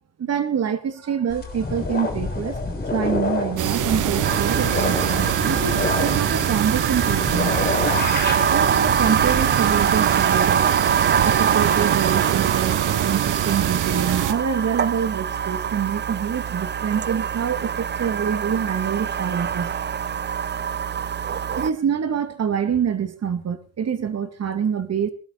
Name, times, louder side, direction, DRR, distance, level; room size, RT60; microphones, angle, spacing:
voice 1, 0.2-2.6 2.9-7.7 8.5-10.7 11.2-19.7 21.6-25.1, right 7 dB, 50° right, 10 dB, 2.6 m, -26 dB
sound 1, 1.3-10.2, left 3 dB, 30° left, 6.4 m, -28 dB
sound 2, 3.6-14.3, right 11 dB, 70° right, 1.6 m, -24 dB
sound 3, 4.2-21.7, right 7 dB, 30° right, 0.7 m, -24 dB
21.0 x 12.5 x 4.2 m, 0.37 s
supercardioid pair, 70°, 33 cm